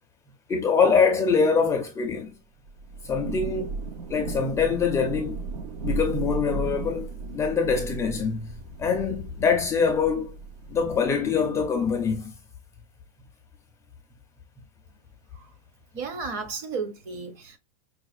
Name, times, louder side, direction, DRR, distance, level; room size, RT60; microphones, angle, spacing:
voice 1, 0.5-2.3 3.0-3.7 4.1-5.4 5.8-8.5 8.8-10.4 10.7-12.3, left 5 dB, 15° left, 0.4 m, -24 dB
Thunder / Rain, 2.7-11.3, right 3 dB, 85° right, 0.8 m, -35 dB
voice 2, 15.9-17.6, right 5 dB, 40° right, 0.8 m, -34 dB
4.7 x 2.1 x 2.4 m
supercardioid pair, 155°, 20 cm